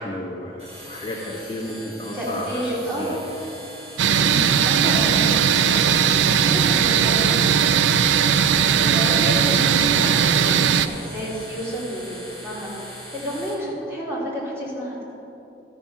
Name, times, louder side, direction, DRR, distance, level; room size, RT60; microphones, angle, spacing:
voice 1, 0.0-2.7 3.0-3.2 4.2-4.7 5.1-5.3, left 1 dB, 30° left, -5 dB, 1.2 m, -32 dB
sound 1, 0.6-13.5, equal, 35° right, 2.0 m, -40 dB
voice 2, 2.0-3.2 4.6-7.9 8.6-15.1, equal, 15° right, -6 dB, 2.5 m, -31 dB
sound 2, 4.0-10.9, right 8 dB, 85° right, 0.4 m, -18 dB
12.5 x 6.0 x 5.6 m, 2.9 s
head